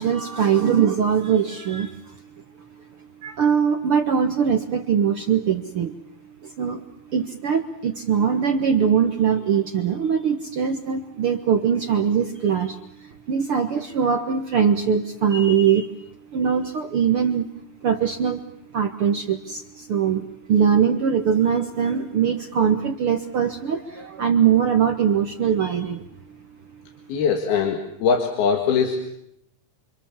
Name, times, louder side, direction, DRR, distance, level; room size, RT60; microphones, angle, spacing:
voice 1, 0.0-2.0 3.2-6.0 6.4-6.8 7.1-15.9 16.3-17.5 17.8-18.4 18.7-26.0, right 7 dB, 70° right, 5 dB, 1.3 m, -21 dB
voice 2, 27.1-29.0, left 6 dB, 80° left, 4 dB, 3.9 m, -21 dB
28.5 x 25.5 x 7.4 m, 0.76 s
omnidirectional pair, 4.3 m